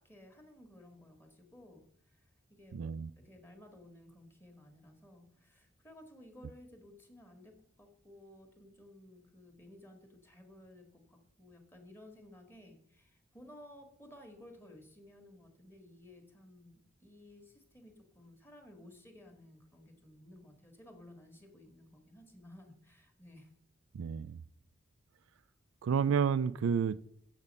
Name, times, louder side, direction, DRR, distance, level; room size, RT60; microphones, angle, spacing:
voice 1, 0.0-23.5, left 1 dB, 10° left, 1.6 m, -56 dB
voice 2, 2.7-3.1 23.9-24.4 25.8-27.0, right 7 dB, 85° right, 0.4 m, -30 dB
7.5 x 7.2 x 5.3 m
head